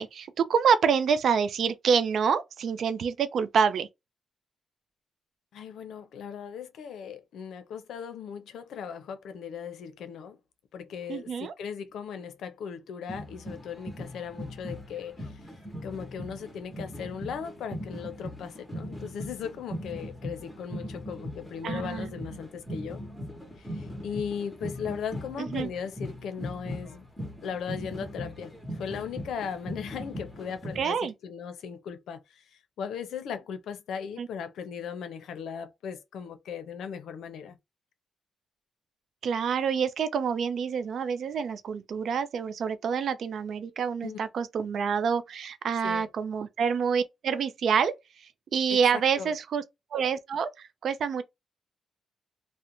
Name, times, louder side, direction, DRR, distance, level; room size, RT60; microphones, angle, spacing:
voice 1, 0.0-3.9 11.1-11.5 21.6-22.1 25.4-25.7 30.8-31.1 34.2-34.3 39.2-47.9 48.2-49.6 49.9-51.2, right 6 dB, 65° right, 0.4 m, -27 dB
voice 2, 5.5-10.4 10.7-15.3 15.8-23.0 23.6-27.1 27.4-32.2 32.8-37.6 44.0-44.2 45.8-46.1 49.2-49.3, left 7 dB, 85° left, 0.5 m, -38 dB
sound 1, 13.1-30.8, equal, 5° left, 0.8 m, -39 dB
2.5 x 2.1 x 2.8 m
cardioid pair, 120°, 0 cm